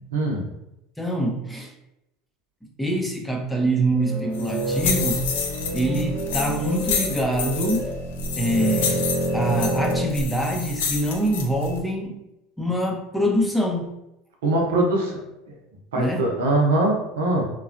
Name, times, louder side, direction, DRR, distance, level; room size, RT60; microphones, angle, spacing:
voice 1, 0.1-0.5 14.4-15.2 15.5-15.6 15.9-17.4, right 2 dB, 80° right, -1 dB, 0.7 m, -22 dB
voice 2, 1.0-1.7 2.8-5.2 5.7-7.9 8.4-9.1 9.3-12.2 12.6-13.9 15.9-16.3, right 1 dB, 5° left, 1 dB, 0.6 m, -24 dB
sound 1, 3.9-10.1, right 1 dB, 50° right, 0.9 m, -28 dB
sound 2, 4.3-11.8, left 5 dB, 75° left, 0.4 m, -29 dB
3.1 x 2.2 x 2.4 m, 0.88 s
hypercardioid pair, 85°, 0 cm